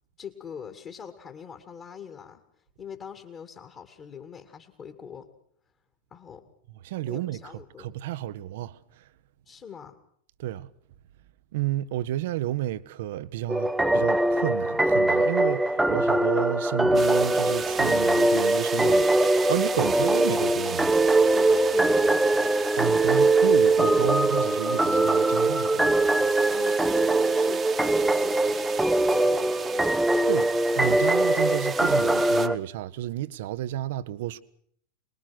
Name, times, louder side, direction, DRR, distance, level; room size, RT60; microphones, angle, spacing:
voice 1, 0.2-2.4 2.8-5.3 6.1-6.5 7.1-7.9 9.5-10.0 21.3-22.6 26.5-27.6 27.9-30.0, left 7 dB, 30° left, 2.4 m, -42 dB
voice 2, 6.8-7.4 7.8-9.0 10.4-10.7 11.5-20.9 22.8-25.9 30.3-34.4, right 14 dB, 55° right, 1.0 m, -31 dB
sound 1, 13.5-32.6, right 2 dB, 5° right, 0.8 m, -22 dB
sound 2, 16.9-32.5, right 6 dB, 20° right, 1.4 m, -37 dB
24.5 x 21.0 x 6.0 m
figure-of-eight pair, 90°, 0 cm